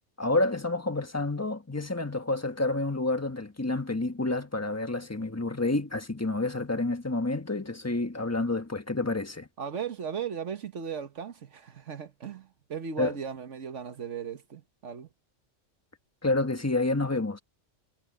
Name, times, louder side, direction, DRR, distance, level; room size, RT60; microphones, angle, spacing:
voice 1, 0.2-9.5 13.0-13.1 16.2-17.4, left 2 dB, 15° left, 1.2 m, -29 dB
voice 2, 9.6-15.1, right 7 dB, 75° right, 1.6 m, -37 dB
omnidirectional pair, 1.3 m